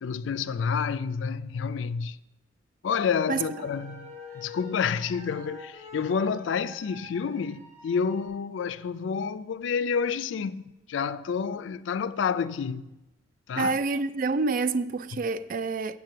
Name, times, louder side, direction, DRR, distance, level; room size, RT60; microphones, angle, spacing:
voice 1, 0.0-2.2 2.8-12.9 13.5-13.8, left 6 dB, 75° left, 0.4 m, -29 dB
sound 1, 2.9-8.3, left 2 dB, 20° right, 3.0 m, -45 dB
voice 2, 13.6-16.0, right 4 dB, 45° right, 0.4 m, -27 dB
7.6 x 7.3 x 6.6 m
head